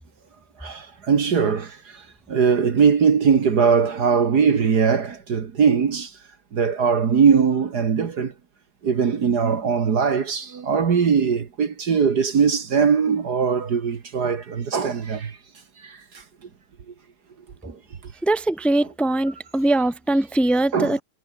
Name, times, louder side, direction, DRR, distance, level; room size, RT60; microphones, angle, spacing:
voice 1, 0.6-1.8 2.3-6.1 6.5-8.3 8.8-15.4 15.8-16.0 17.6-17.8 20.7-21.0, right 6 dB, 50° right, 2.0 m, -20 dB
voice 2, 18.2-21.0, right 1 dB, ahead, 1.5 m, -21 dB
omnidirectional pair, 2.3 m